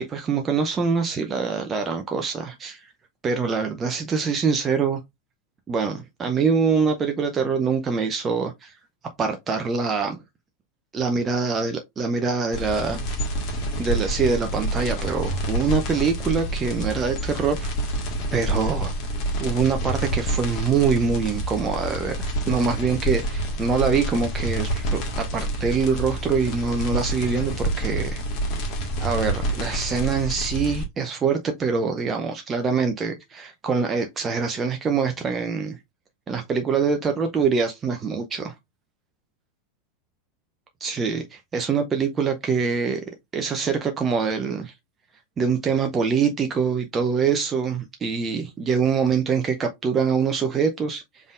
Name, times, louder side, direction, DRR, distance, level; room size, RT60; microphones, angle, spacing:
voice 1, 0.1-2.9 3.2-5.0 5.7-8.7 9.2-10.2 10.9-13.0 13.8-17.7 18.3-18.9 19.4-28.2 29.0-35.8 36.3-38.5 40.8-43.0 43.3-44.7 45.4-51.3, right 5 dB, 20° right, 0.6 m, -24 dB
sound 1, 12.5-30.8, right 1 dB, 40° left, 1.6 m, -28 dB
5.2 x 3.7 x 2.5 m
figure-of-eight pair, 90°, 0 cm